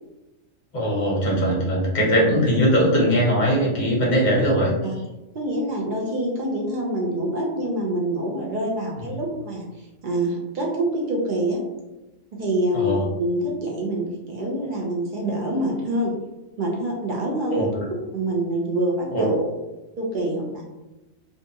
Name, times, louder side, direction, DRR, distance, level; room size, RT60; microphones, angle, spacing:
voice 1, 0.7-4.7 12.7-13.0 17.5-17.8 19.1-19.5, equal, 40° left, -3 dB, 0.8 m, -20 dB
voice 2, 5.3-11.6 12.3-16.1 16.6-17.7 18.1-19.4 20.0-20.6, right 1 dB, 60° right, -2 dB, 0.5 m, -26 dB
2.7 x 2.2 x 2.6 m, 1.0 s
omnidirectional pair, 1.4 m